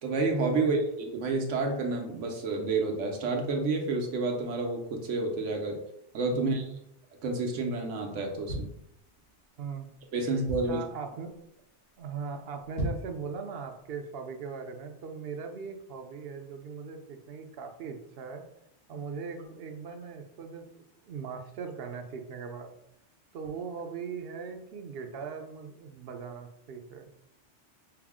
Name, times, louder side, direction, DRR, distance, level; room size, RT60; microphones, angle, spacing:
voice 1, 0.0-5.8 6.1-6.6 7.2-8.7 10.1-10.8, right 3 dB, 85° right, 3 dB, 1.1 m, -29 dB
voice 2, 6.3-6.8 9.6-9.9 10.2-10.3 10.7-11.5 12.0-18.4 18.9-22.7 23.3-27.2, right 5 dB, 60° right, 5 dB, 0.7 m, -40 dB
sound 1, 8.5-9.4 9.9-10.0 10.2-11.0 11.4-11.7 12.0-12.1 12.6-13.2 13.6-13.7, equal, 85° left, 1.9 m, -36 dB
5.7 x 2.0 x 3.5 m, 0.79 s
omnidirectional pair, 1.2 m